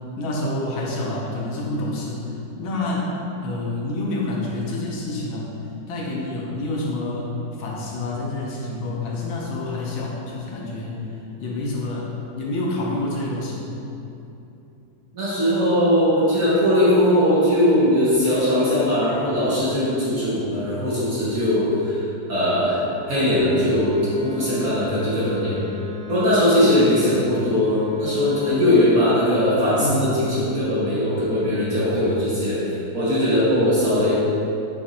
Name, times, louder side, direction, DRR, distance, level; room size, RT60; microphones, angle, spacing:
voice 1, 0.2-2.3 2.6-3.1 3.4-5.5 5.9-13.7 29.7-30.1, left 2 dB, 75° left, -3 dB, 1.5 m, -28 dB
voice 2, 15.1-22.0 22.3-25.6 26.1-34.2, left 1 dB, 50° right, -10 dB, 1.2 m, -20 dB
Wind instrument woodwind instrument, 23.7-28.9, left 5 dB, 45° left, 2.1 m, -37 dB
7.2 x 2.6 x 2.7 m, 2.9 s
omnidirectional pair, 2.3 m